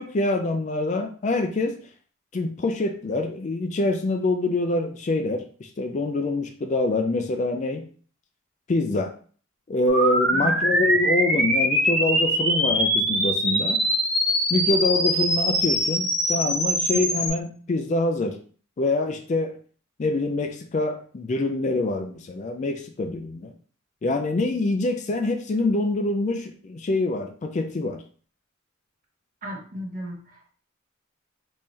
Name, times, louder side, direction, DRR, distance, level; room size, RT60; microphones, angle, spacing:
voice 1, 0.0-1.8 2.3-7.8 8.7-9.1 9.7-13.8 14.5-18.4 18.8-19.6 20.0-23.5 24.0-28.0, left 2 dB, 35° left, 6 dB, 0.4 m, -25 dB
sound 1, 9.9-17.3, equal, ahead, 1.7 m, -23 dB
voice 2, 10.3-10.7 29.4-30.5, equal, 40° right, 0 dB, 1.0 m, -36 dB
3.6 x 3.1 x 2.7 m, 0.43 s
head